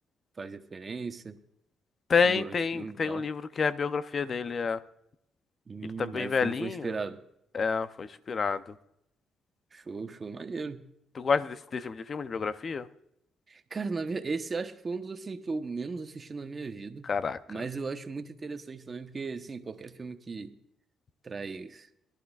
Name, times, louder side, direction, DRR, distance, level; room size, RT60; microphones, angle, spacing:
voice 1, 0.4-1.4 2.2-3.2 5.7-7.2 9.7-10.8 13.5-17.1 17.5-20.5 21.2-21.9, right 4 dB, 35° right, 7 dB, 1.1 m, -37 dB
voice 2, 2.1-4.8 6.0-6.9 7.5-8.7 11.2-12.9 17.0-17.4, left 5 dB, 45° left, 13 dB, 0.6 m, -29 dB
21.5 x 12.0 x 2.4 m, 0.79 s
cardioid pair, 90°, 0 cm